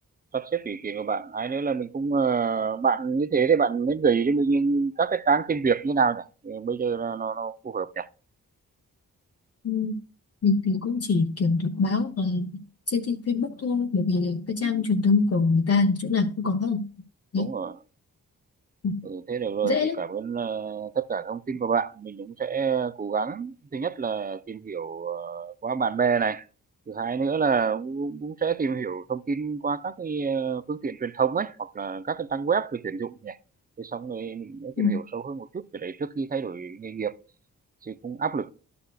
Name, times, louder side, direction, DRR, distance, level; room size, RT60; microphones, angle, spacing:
voice 1, 0.3-8.1 14.6-14.9 17.4-17.8 19.0-26.4 26.9-33.4 33.8-37.1 37.8-38.5, right 5 dB, 25° right, 0.5 m, -27 dB
voice 2, 10.4-12.6 12.9-16.8 17.3-17.5 18.8-19.0 19.6-20.0 34.8-35.0, left 4 dB, 45° left, 0.8 m, -24 dB
11.5 x 6.9 x 2.3 m
cardioid pair, 65°, 33 cm